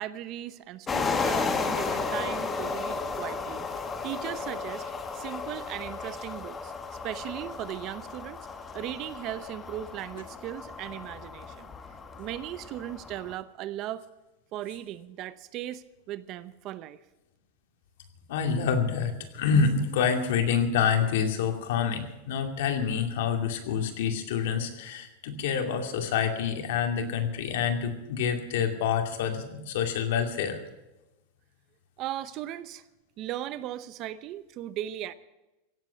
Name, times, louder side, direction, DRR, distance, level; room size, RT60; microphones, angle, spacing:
voice 1, 0.0-6.7 7.0-8.5 8.7-11.7 12.2-14.0 14.5-17.0 32.0-32.8 33.2-35.1, right 12 dB, 40° right, 15 dB, 0.7 m, -37 dB
sound 1, 0.9-13.3, left 4 dB, 15° left, 1.3 m, -34 dB
voice 2, 18.3-30.6, left 6 dB, 70° left, 5 dB, 2.5 m, -27 dB
16.5 x 8.1 x 9.8 m, 1.0 s
supercardioid pair, 150°, 0 cm